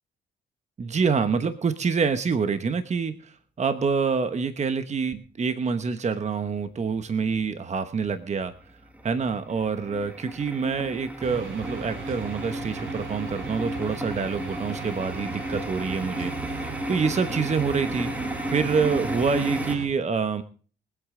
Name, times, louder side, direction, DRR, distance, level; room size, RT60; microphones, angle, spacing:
voice 1, 0.8-8.5 9.0-18.1 18.5-20.4, right 5 dB, 35° right, 10 dB, 1.0 m, -26 dB
sound 1, 6.6-7.4 7.8-19.8, equal, 5° right, 1.6 m, -34 dB
sound 2, 11.2-19.9, right 5 dB, 70° right, 3.7 m, -38 dB
23.5 x 8.4 x 3.8 m, 0.40 s
cardioid pair, 90°, 20 cm